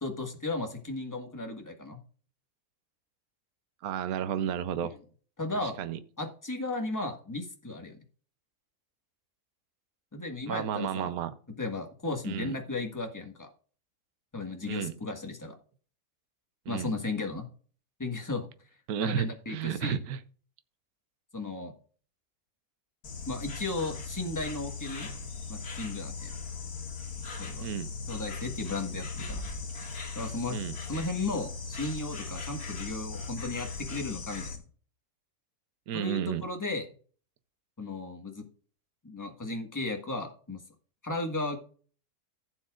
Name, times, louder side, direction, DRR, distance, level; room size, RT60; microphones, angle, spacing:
voice 1, 0.0-2.0 5.4-5.8 6.2-8.0 10.1-11.1 11.6-13.5 14.3-15.5 16.7-17.5 18.0-18.5 19.0-20.0 21.3-21.7 23.3-25.1 25.5-26.3 27.4-27.7 28.1-29.4 30.1-30.6 30.9-34.6 35.9-36.8 37.8-38.4 39.0-40.6 41.0-41.6, left 2 dB, 10° left, 3 dB, 1.5 m, -35 dB
voice 2, 3.8-4.9 5.6-6.0 10.5-11.3 12.2-12.5 14.7-14.9 16.7-16.9 18.9-20.2 27.6-27.9 30.5-30.8 35.9-36.4, right 9 dB, 70° right, 11 dB, 1.2 m, -32 dB
Insect, 23.0-34.6, left 4 dB, 70° left, 2.4 m, -39 dB
15.5 x 7.1 x 2.4 m, 0.42 s
omnidirectional pair, 1.7 m